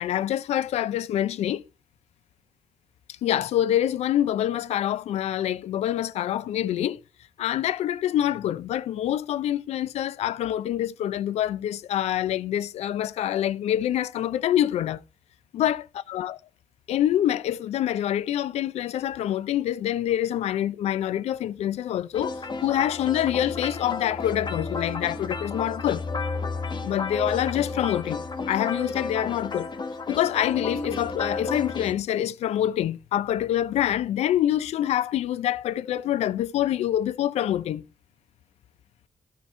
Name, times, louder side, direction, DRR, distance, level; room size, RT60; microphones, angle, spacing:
voice 1, 0.0-1.6 3.2-7.0 7.4-15.0 15.5-16.4 16.9-26.0 26.8-29.7 30.1-37.8, left 11 dB, 80° left, 0.5 m, -26 dB
sound 1, 22.1-31.9, left 3 dB, 45° left, 1.4 m, -32 dB
13.0 x 5.1 x 4.3 m
cardioid pair, 65°, 11 cm